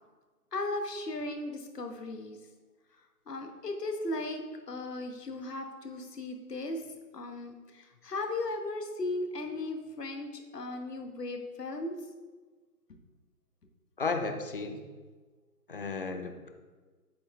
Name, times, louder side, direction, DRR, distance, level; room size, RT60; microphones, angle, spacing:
voice 1, 0.5-2.4 3.3-6.8 7.1-11.9, left 2 dB, 80° left, 5 dB, 1.2 m, -36 dB
voice 2, 14.0-14.8 15.7-16.5, left 4 dB, 35° left, 5 dB, 0.6 m, -34 dB
8.4 x 4.3 x 3.3 m, 1.3 s
figure-of-eight pair, 150°, 47 cm